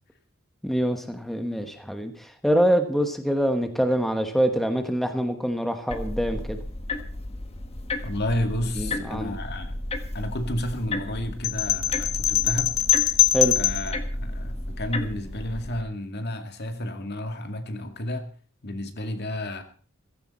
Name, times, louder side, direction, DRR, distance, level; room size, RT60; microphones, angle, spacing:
voice 1, 0.6-6.6 8.8-9.3 13.3-13.6, equal, ahead, 6 dB, 1.1 m, -25 dB
sound 1, 5.9-15.8, left 2 dB, 30° left, 1.5 m, -33 dB
voice 2, 8.0-9.8 10.1-12.8 13.6-18.3 18.6-19.6, left 1 dB, 50° left, 6 dB, 2.1 m, -31 dB
sound 2, 11.4-13.9, left 13 dB, 80° left, 1.1 m, -22 dB
15.5 x 15.5 x 4.3 m, 0.42 s
head